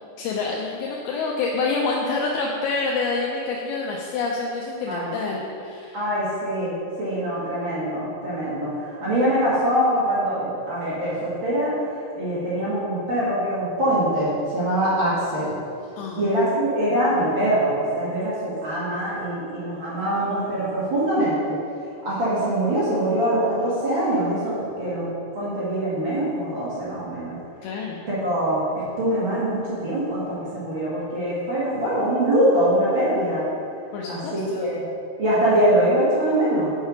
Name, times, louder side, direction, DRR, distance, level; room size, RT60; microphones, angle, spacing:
voice 1, 0.2-6.0 16.0-16.2 27.6-28.0 33.9-34.7, left 3 dB, 85° left, -2 dB, 2.5 m, -27 dB
voice 2, 5.9-6.7 7.0-11.8 12.1-15.6 16.1-21.6 22.0-25.1 25.3-27.4 28.1-33.5 34.1-34.9 35.2-36.7, right 1 dB, 40° right, -10 dB, 2.0 m, -23 dB
6.9 x 6.3 x 5.1 m, 2.6 s
omnidirectional pair, 4.4 m